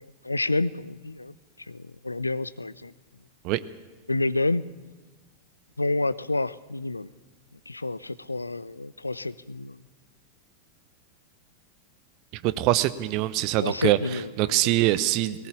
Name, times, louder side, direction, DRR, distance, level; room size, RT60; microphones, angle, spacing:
voice 1, 0.0-1.3 1.7-2.9 4.1-4.6 5.8-7.1 7.7-9.8 13.6-14.7 15.3-15.5, left 2 dB, 80° left, 19 dB, 0.5 m, -29 dB
voice 2, 12.3-14.0 14.4-15.4, right 16 dB, 40° right, 16 dB, 0.8 m, -23 dB
18.5 x 17.5 x 8.5 m, 1.2 s
figure-of-eight pair, 90°, 0 cm